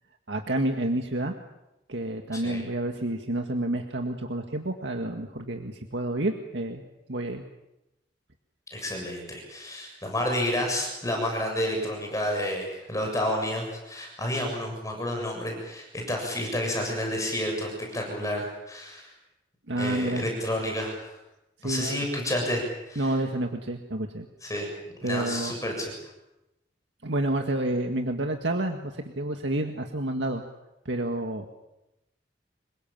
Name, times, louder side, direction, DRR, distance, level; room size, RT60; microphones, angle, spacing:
voice 1, 0.3-1.3 1.9-6.8 7.1-7.4 19.7-20.2 21.6-22.0 23.0-24.3 25.0-25.5 27.0-30.4 30.9-31.5, right 1 dB, 85° right, 4 dB, 1.9 m, -29 dB
voice 2, 2.3-2.6 8.7-19.1 19.8-21.1 21.6-23.1 24.4-25.9, left 1 dB, 20° left, 1 dB, 7.3 m, -30 dB
27.0 x 23.0 x 7.5 m, 0.92 s
head